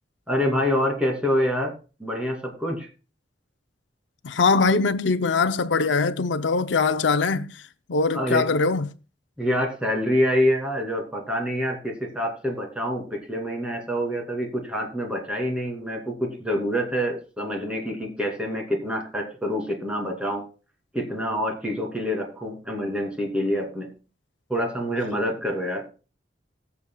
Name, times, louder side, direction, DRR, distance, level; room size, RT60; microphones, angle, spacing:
voice 1, 0.3-1.7 2.0-2.9 8.1-8.5 9.4-20.4 20.9-23.9 24.5-25.9, equal, 5° right, 2.6 m, -26 dB
voice 2, 4.2-7.6 7.9-8.9, left 4 dB, 85° left, 0.6 m, -22 dB
21.0 x 7.1 x 2.3 m
head